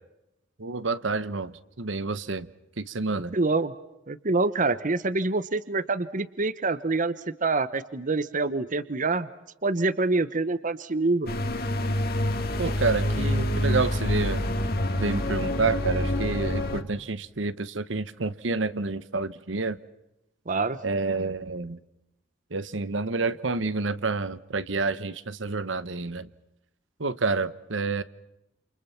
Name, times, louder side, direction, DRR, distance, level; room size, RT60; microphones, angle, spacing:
voice 1, 0.6-2.5 2.8-3.4 12.6-14.5 15.0-19.8 20.8-21.8 22.5-26.3 27.0-28.0, right 3 dB, 70° right, 15 dB, 1.1 m, -29 dB
voice 2, 3.3-3.7 4.1-7.1 7.4-9.3 9.6-11.3 20.5-20.8, right 3 dB, 40° right, 15 dB, 0.9 m, -26 dB
sound 1, 11.3-16.8, left 1 dB, 50° left, 2.6 m, -26 dB
29.0 x 28.5 x 5.8 m, 0.88 s
head